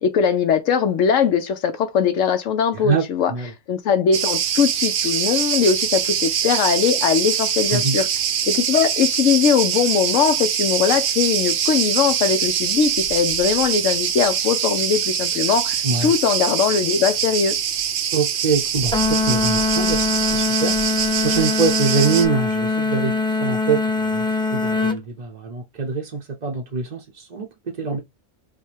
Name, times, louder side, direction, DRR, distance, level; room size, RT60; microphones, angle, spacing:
voice 1, 0.0-3.3 3.7-8.1 8.4-17.5, left 7 dB, 70° left, 1.0 m, -20 dB
voice 2, 2.7-3.5 7.7-8.0 15.8-16.1 18.1-20.7 21.2-24.2 24.5-28.0, right 4 dB, 40° right, 0.7 m, -24 dB
Cricket, 4.1-22.3, right 8 dB, 65° right, 0.9 m, -23 dB
sound 1, 18.9-25.0, left 3 dB, 5° left, 0.5 m, -22 dB
5.4 x 2.2 x 3.3 m
omnidirectional pair, 1.4 m